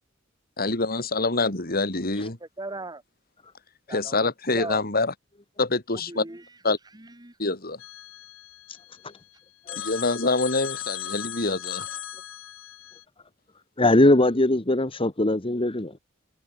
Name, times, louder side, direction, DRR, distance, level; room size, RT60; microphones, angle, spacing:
voice 1, 0.6-2.4 3.9-5.1 5.6-6.2 6.6-6.8 7.4-7.8 9.8-11.9, left 3 dB, 50° left, 4.3 m, -25 dB
voice 2, 2.4-3.0 3.9-4.8 6.1-6.5 6.9-7.3, right 2 dB, 20° right, 2.2 m, -38 dB
Telephone, 7.8-9.2 9.7-13.0, left 11 dB, 75° left, 2.3 m, -38 dB
voice 3, 13.8-16.0, left 1 dB, 25° left, 1.6 m, -21 dB
head